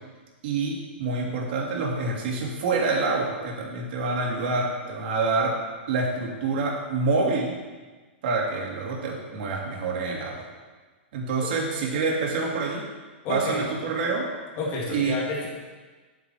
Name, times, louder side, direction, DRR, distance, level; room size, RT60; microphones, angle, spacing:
voice 1, 0.4-5.6 5.9-7.6 8.2-10.5 11.1-12.8 13.3-14.3 14.9-15.2, right 3 dB, 60° right, -1 dB, 2.8 m, -27 dB
voice 2, 13.2-13.7 14.6-15.5, left 2 dB, 40° left, -4 dB, 2.6 m, -30 dB
9.6 x 8.2 x 4.7 m, 1.3 s
hypercardioid pair, 135°, 6 cm